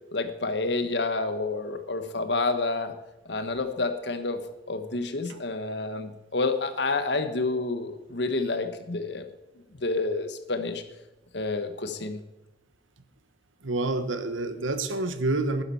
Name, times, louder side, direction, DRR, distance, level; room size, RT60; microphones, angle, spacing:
voice 1, 0.1-2.9 3.3-4.4 4.7-9.2 9.8-10.8 11.3-12.2, left 3 dB, 60° left, 9 dB, 1.3 m, -29 dB
voice 2, 13.6-15.6, right 2 dB, 85° right, 10 dB, 1.2 m, -28 dB
11.5 x 10.0 x 5.7 m, 0.98 s
head